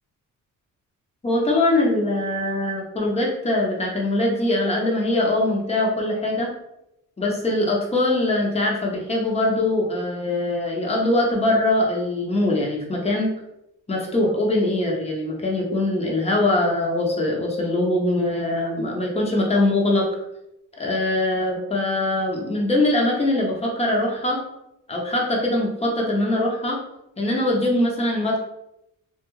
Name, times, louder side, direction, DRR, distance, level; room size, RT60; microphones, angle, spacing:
voice 1, 1.2-6.5 7.2-13.3 13.9-20.1 20.7-24.4 24.9-26.8 27.2-28.4, left 1 dB, 20° left, -1 dB, 0.7 m, -22 dB
2.3 x 2.2 x 3.0 m, 0.84 s
cardioid pair, 95°, 33 cm